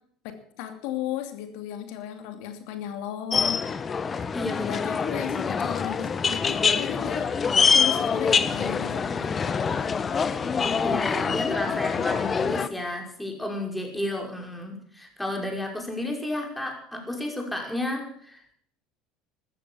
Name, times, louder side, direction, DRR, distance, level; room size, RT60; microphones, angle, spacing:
voice 1, 0.6-3.9 4.6-7.3 7.7-9.6, left 11 dB, 70° left, 8 dB, 2.7 m, -35 dB
sound 1, 3.3-12.7, left 6 dB, 30° left, 1.2 m, -25 dB
voice 2, 4.1-4.7 5.1-5.3 10.8-18.4, left 1 dB, 5° left, 2 dB, 5.5 m, -32 dB
14.0 x 13.0 x 7.1 m, 0.64 s
hypercardioid pair, 85°, 0 cm